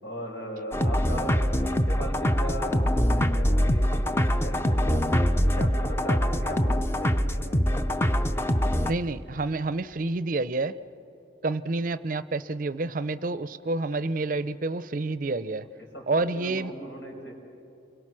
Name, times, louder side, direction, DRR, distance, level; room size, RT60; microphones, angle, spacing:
voice 1, 0.0-5.1 5.4-7.8 15.8-17.3, equal, 90° left, -1 dB, 5.7 m, -38 dB
sound 1, 0.7-8.9, equal, 15° left, 0.5 m, -24 dB
voice 2, 8.8-10.7 11.4-15.7 16.1-16.7, right 3 dB, 45° right, 15 dB, 0.5 m, -28 dB
29.5 x 22.5 x 6.2 m, 2.7 s
head